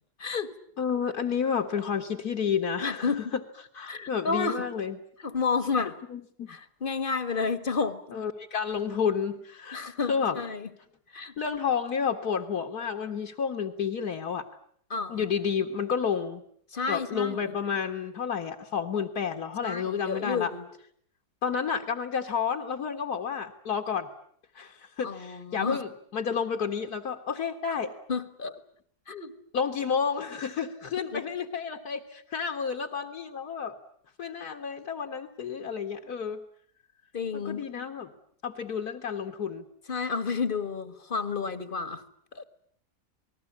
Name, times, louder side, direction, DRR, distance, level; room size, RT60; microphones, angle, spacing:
voice 1, 0.2-0.5 2.8-3.4 3.9-4.7 5.2-6.0 6.5-8.0 9.7-10.7 11.1-11.3 14.9-15.3 16.7-17.6 19.6-20.6 25.0-25.8 28.1-28.6 29.1-29.3 31.1-31.2 37.1-37.6 39.9-42.0 42.3-42.4, left 5 dB, 30° left, 12 dB, 1.7 m, -31 dB
voice 2, 0.8-3.2 3.7-5.0 6.1-6.6 8.1-10.4 11.4-14.5 15.1-16.4 16.9-20.5 21.4-24.1 24.6-27.9 29.5-33.7 34.2-36.4 37.3-38.1 38.4-39.6, left 6 dB, 65° left, 3 dB, 2.1 m, -30 dB
28.5 x 20.0 x 8.7 m, 0.63 s
omnidirectional pair, 1.8 m